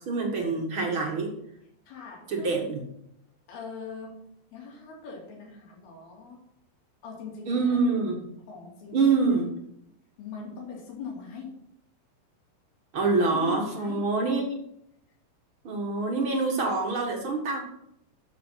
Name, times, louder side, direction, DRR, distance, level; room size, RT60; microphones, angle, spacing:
voice 1, 0.0-1.3 2.3-2.8 7.5-8.2 8.9-9.5 12.9-14.4 15.6-17.6, right 3 dB, 45° right, 0 dB, 1.8 m, -25 dB
voice 2, 1.9-2.6 3.5-4.1 4.5-6.4 7.0-7.8 8.5-9.4 10.2-11.5 13.3-14.0, left 4 dB, 80° left, -2 dB, 4.8 m, -40 dB
9.8 x 7.3 x 5.7 m, 0.77 s
omnidirectional pair, 4.4 m